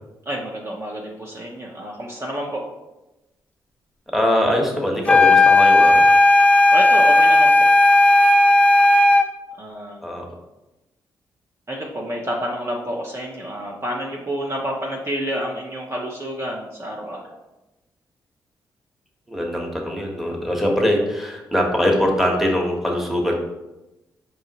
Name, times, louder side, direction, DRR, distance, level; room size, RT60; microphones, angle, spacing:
voice 1, 0.3-2.6 6.7-7.7 9.6-10.1 11.7-17.4, equal, 30° right, -2 dB, 0.7 m, -29 dB
voice 2, 4.1-6.0 10.0-10.3 19.3-23.3, equal, ahead, 0 dB, 1.1 m, -22 dB
sound 1, 5.0-9.3, left 2 dB, 15° left, 0.5 m, -13 dB
4.8 x 2.9 x 2.8 m, 0.99 s
hypercardioid pair, 45°, 8 cm